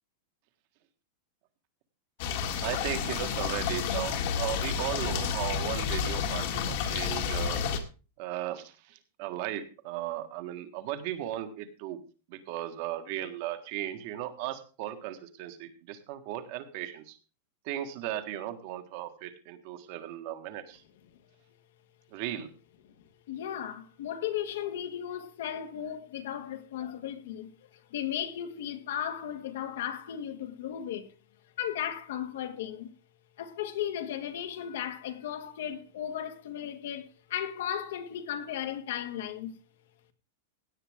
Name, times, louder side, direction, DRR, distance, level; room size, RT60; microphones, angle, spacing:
sound 1, 2.2-7.8, left 7 dB, 45° left, 1.9 m, -30 dB
voice 1, 2.6-7.6 8.2-12.0 12.3-17.2 17.6-20.8 22.1-22.5, right 12 dB, 40° right, 1.6 m, -36 dB
voice 2, 22.9-31.1 31.6-32.9 33.4-39.5, left 10 dB, 65° left, 1.8 m, -36 dB
16.5 x 9.1 x 3.6 m
supercardioid pair, 175°, 0 cm